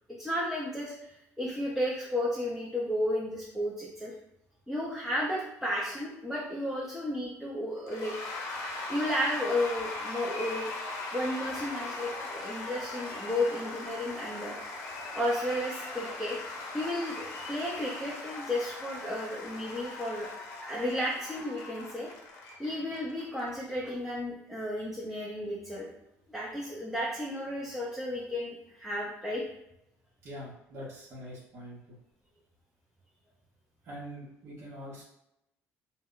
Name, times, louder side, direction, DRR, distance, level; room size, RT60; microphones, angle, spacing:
voice 1, 0.2-1.1 1.4-4.2 4.7-8.1 8.9-10.7 11.1-14.6 15.1-16.4 16.7-20.3 20.6-22.1 22.6-25.9 26.3-29.4, left 1 dB, 5° right, -6 dB, 0.5 m, -33 dB
Cheering / Applause / Crowd, 7.9-23.5, left 2 dB, 75° left, 0.6 m, -39 dB
voice 2, 30.2-32.0 33.8-35.0, equal, 55° right, -6 dB, 0.8 m, -44 dB
2.1 x 2.0 x 3.8 m, 0.84 s
cardioid pair, 105°, 5 cm